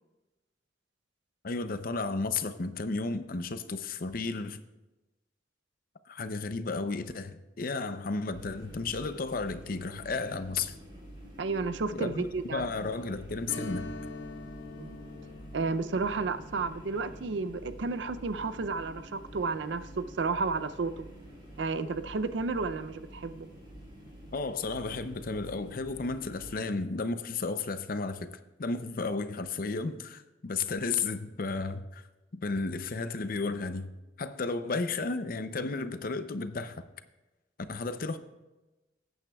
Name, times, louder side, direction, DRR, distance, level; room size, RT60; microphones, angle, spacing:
voice 1, 1.4-4.6 6.1-10.7 11.9-13.9 24.3-28.3 28.6-32.0 32.4-33.9 34.2-36.8 37.7-38.2, left 3 dB, 50° left, 0.6 m, -33 dB
sound 1, 8.3-26.7, right 1 dB, 25° right, 3.5 m, -49 dB
voice 2, 11.4-12.6 14.8-15.1 15.5-21.1 21.6-23.5, right 4 dB, 75° right, 0.5 m, -32 dB
Strum, 13.5-22.7 23.0-23.1 25.6-25.8 26.2-26.3, left 2 dB, 90° left, 1.1 m, -47 dB
18.0 x 9.1 x 2.3 m
head